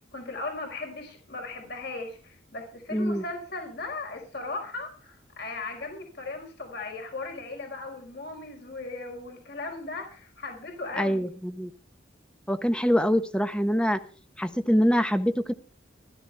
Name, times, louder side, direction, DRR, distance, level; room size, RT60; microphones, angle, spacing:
voice 1, 0.1-11.2, left 3 dB, 55° left, 3 dB, 4.8 m, -37 dB
voice 2, 2.9-3.2 11.0-11.7 12.5-14.0 14.4-15.5, equal, 5° left, 10 dB, 1.1 m, -24 dB
16.0 x 13.0 x 3.5 m, 0.39 s
head